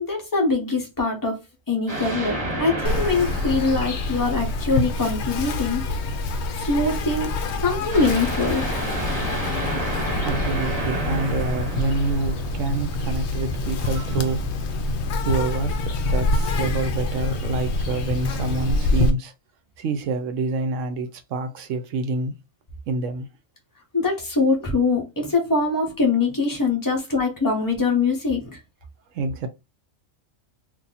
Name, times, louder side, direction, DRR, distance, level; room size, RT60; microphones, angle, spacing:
voice 1, 0.1-1.3 1.7-5.8 6.6-7.3 7.6-8.7 23.9-28.6, left 3 dB, 15° left, 0.8 m, -23 dB
sound 1, 1.9-5.0 7.9-13.1, right 1 dB, 25° right, 1.5 m, -31 dB
Insect, 2.8-19.1, left 2 dB, 65° left, 0.8 m, -26 dB
voice 2, 10.2-14.6 15.2-19.3 19.8-22.3 22.9-23.3 29.1-29.5, right 3 dB, 75° right, 0.9 m, -27 dB
2.8 x 2.6 x 3.9 m
omnidirectional pair, 1.4 m